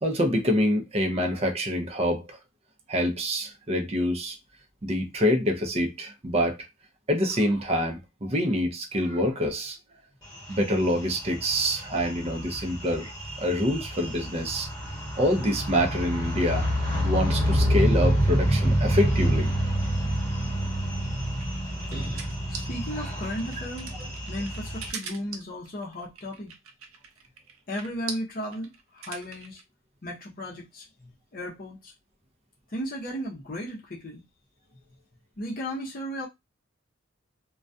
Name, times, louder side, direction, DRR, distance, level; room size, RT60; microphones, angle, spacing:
voice 1, 0.0-2.4 2.9-4.4 4.8-6.6 7.1-9.8 10.5-14.7 15.2-16.7 17.0-19.5, equal, 30° right, 0.5 m, -26 dB
sound 1, 10.3-24.9, equal, 20° left, 1.1 m, -28 dB
sound 2, 20.9-29.6, right 6 dB, 85° right, 0.5 m, -41 dB
voice 2, 22.5-23.9 24.3-26.5 27.7-29.6 30.0-31.9 32.7-34.2 35.4-36.3, equal, 45° left, 0.6 m, -35 dB
2.2 x 2.2 x 2.5 m
head